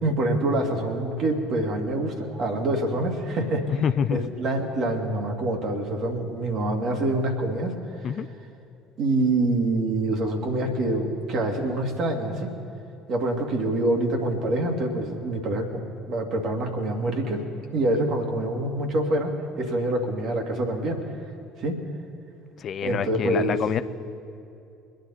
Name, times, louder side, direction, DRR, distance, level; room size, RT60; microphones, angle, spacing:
voice 1, 0.0-3.7 4.1-8.1 9.0-12.5 13.1-17.5 17.7-21.0 21.6-21.8 22.8-23.6, right 2 dB, 50° right, 2 dB, 2.3 m, -26 dB
voice 2, 3.7-4.3 8.0-8.3 22.6-23.8, left 8 dB, 45° left, 12 dB, 0.5 m, -26 dB
24.0 x 9.8 x 4.3 m, 2.7 s
figure-of-eight pair, 55°, 0 cm